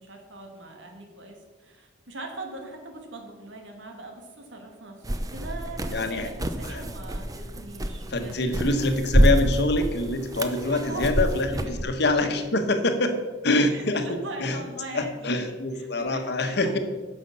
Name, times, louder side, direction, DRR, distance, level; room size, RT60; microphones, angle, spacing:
voice 1, 0.0-8.4 10.6-11.2 11.5-11.8 12.2-12.4 13.7-16.8, right 2 dB, 85° right, 3 dB, 1.9 m, -41 dB
sound 1, 5.0-11.8, right 1 dB, 20° right, 0.7 m, -27 dB
voice 2, 5.9-6.3 6.6-6.8 8.1-13.2 13.4-14.1 14.4-14.6 14.9-16.8, left 2 dB, 60° left, 7 dB, 1.1 m, -25 dB
9.6 x 6.1 x 6.8 m, 1.3 s
head